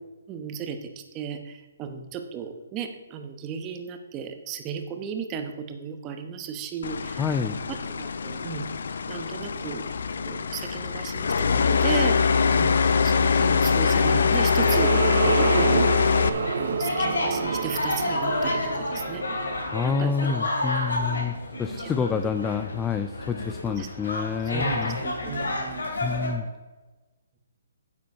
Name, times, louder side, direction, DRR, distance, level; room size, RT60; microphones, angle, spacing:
voice 1, 0.3-7.2 7.7-8.7 9.1-9.9 10.2-12.7 13.0-16.2 16.6-19.5 19.8-20.4 21.0-21.1 21.8-22.3 23.8-23.9 24.4-26.0, right 7 dB, 20° right, 7 dB, 1.0 m, -35 dB
sound 1, 6.8-16.3, left 6 dB, 70° left, 0.6 m, -23 dB
voice 2, 7.2-7.6 19.7-21.3 21.6-25.0 26.0-26.5, left 6 dB, 10° left, 7 dB, 0.4 m, -28 dB
sound 2, 11.8-26.3, left 2 dB, 85° left, 2.9 m, -31 dB
sound 3, 14.0-20.5, right 7 dB, 60° right, 0.5 m, -29 dB
9.3 x 7.4 x 5.4 m, 1.2 s
hypercardioid pair, 155°, 0 cm